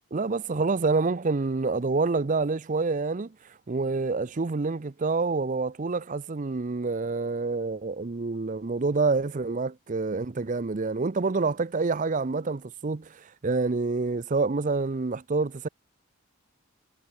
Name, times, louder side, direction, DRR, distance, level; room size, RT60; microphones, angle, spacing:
voice 1, 0.1-3.3 3.7-15.7, right 3 dB, 35° right, 0.5 m, -27 dB
head